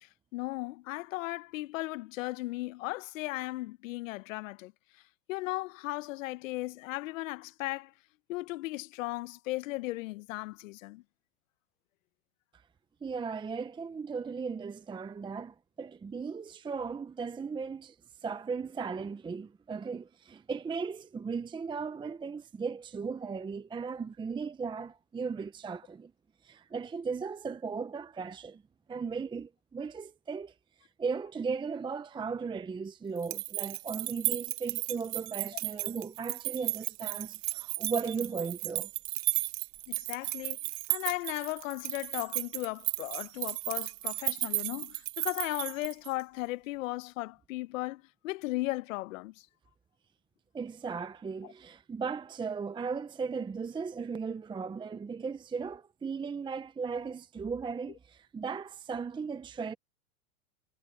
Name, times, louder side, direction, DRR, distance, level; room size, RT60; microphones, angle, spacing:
voice 1, 0.0-4.7 5.3-7.9 8.3-11.0 39.9-40.6 40.9-49.5 51.4-51.5, left 19 dB, 55° left, 1.1 m, -36 dB
voice 2, 13.0-18.0 18.2-26.1 26.4-28.6 28.9-30.5 31.0-38.9 50.5-59.7, right 5 dB, 10° right, 0.9 m, -37 dB
sound 1, 33.2-46.2, right 23 dB, 40° right, 1.0 m, -34 dB
hypercardioid pair, 120°, 46 cm